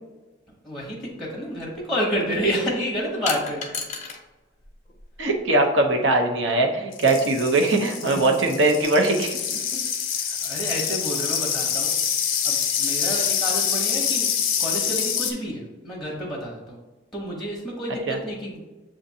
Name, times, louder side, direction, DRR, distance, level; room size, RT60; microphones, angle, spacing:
voice 1, 0.6-3.8 8.1-8.3 10.1-12.0 12.4-14.3 14.6-16.8 17.1-18.6, equal, ahead, -4 dB, 0.8 m, -29 dB
sound 1, 1.3-1.5 3.3-4.2 4.6-5.4, left 5 dB, 35° left, 0.5 m, -33 dB
voice 2, 5.2-9.4 18.1-18.2, right 2 dB, 65° right, 2 dB, 0.7 m, -21 dB
sound 2, 6.9-15.3, left 8 dB, 80° left, 0.6 m, -26 dB
7.1 x 2.5 x 2.7 m, 1.2 s
head